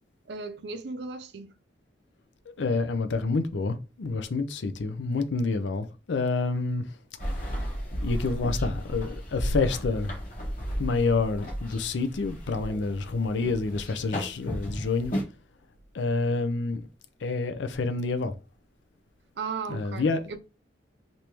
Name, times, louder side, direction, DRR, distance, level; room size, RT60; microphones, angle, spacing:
voice 1, 0.3-1.5 19.4-20.4, right 4 dB, 70° right, 0.5 m, -36 dB
voice 2, 2.6-6.8 8.0-10.1 10.8-15.1 15.9-16.9 17.2-18.3 19.7-20.2, left 3 dB, 85° left, 0.5 m, -28 dB
sound 1, 7.2-15.2, equal, 45° left, 1.0 m, -34 dB
3.3 x 2.6 x 3.0 m
head